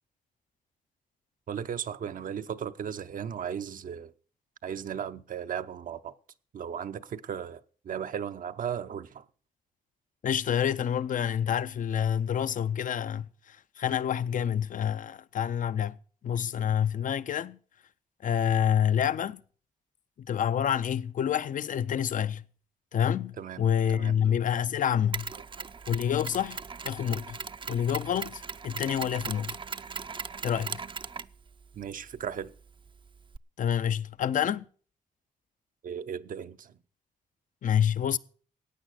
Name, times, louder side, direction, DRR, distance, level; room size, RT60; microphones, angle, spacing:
voice 1, 1.5-4.1 4.6-6.1 6.5-9.2 23.4-23.6 23.9-24.1 25.6-25.7 31.8-32.5 35.8-36.8, right 8 dB, 70° right, 0.7 m, -36 dB
voice 2, 10.2-16.0 16.2-17.6 18.2-19.4 20.2-22.4 22.9-25.3 25.9-27.4 27.7-29.6 30.4-30.8 33.6-34.7 37.6-38.2, left 9 dB, 65° left, 0.6 m, -28 dB
Mechanisms, 25.1-33.4, right 5 dB, 35° right, 0.5 m, -40 dB
15.0 x 9.0 x 6.5 m
cardioid pair, 65°, 15 cm